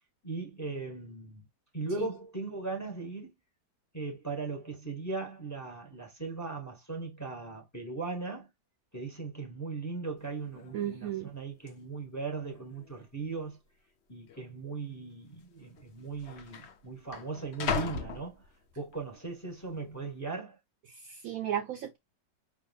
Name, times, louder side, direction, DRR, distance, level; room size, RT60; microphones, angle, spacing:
voice 1, 0.2-1.5 1.7-3.3 3.9-8.5 8.9-13.6 14.1-18.4 18.8-20.6, right 3 dB, 10° left, 1.1 m, -38 dB
sound 1, 10.2-10.3 10.5-11.0 11.7-11.8 12.5-13.0 13.3-13.4 14.3-14.4 15.4-15.5 15.8-19.0 19.5-19.9, left 6 dB, 55° left, 0.8 m, -38 dB
voice 2, 10.7-11.3 21.0-22.0, right 10 dB, 70° right, 0.9 m, -34 dB
5.0 x 3.5 x 2.3 m
omnidirectional pair, 1.8 m